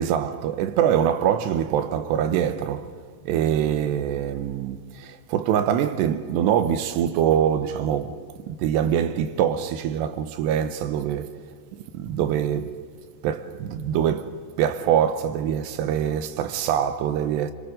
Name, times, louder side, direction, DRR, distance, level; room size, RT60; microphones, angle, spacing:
voice 1, 0.0-2.9 3.3-11.3 11.9-12.8 13.2-17.5, right 9 dB, 80° right, 2.9 m, -24 dB
27.0 x 25.5 x 5.1 m
omnidirectional pair, 5.1 m